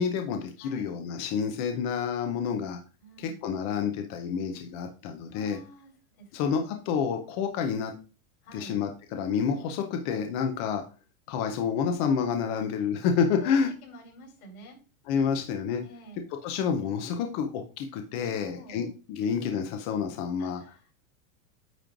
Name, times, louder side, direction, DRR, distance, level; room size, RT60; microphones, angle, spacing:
voice 1, 0.0-2.8 3.4-5.6 6.3-7.9 8.5-10.8 11.3-13.7 15.1-15.8 16.4-20.6, left 6 dB, 25° left, 5 dB, 0.6 m, -29 dB
voice 2, 3.0-3.4 5.3-6.3 6.6-6.8 8.4-8.7 12.6-12.7 13.3-14.8 15.8-16.2 18.2-18.9 20.4-20.9, equal, 85° left, -1 dB, 4.6 m, -49 dB
9.1 x 3.1 x 5.0 m, 0.33 s
supercardioid pair, 180°, 43 cm